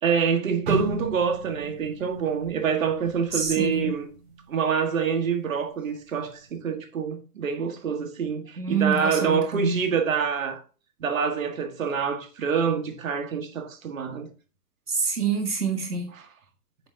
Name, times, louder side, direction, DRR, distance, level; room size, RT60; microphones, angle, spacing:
voice 1, 0.0-4.1 4.5-10.6 11.0-14.3 16.1-16.2, right 6 dB, 60° right, 1.7 m, -26 dB
sound 1, 0.7-4.7 5.0-5.3 6.0-6.3, right 2 dB, 40° right, 3.2 m, -35 dB
voice 2, 3.3-3.9 8.6-9.8 14.9-16.1, right 4 dB, 85° right, 1.4 m, -26 dB
8.7 x 6.8 x 2.8 m
figure-of-eight pair, 120°, 45 cm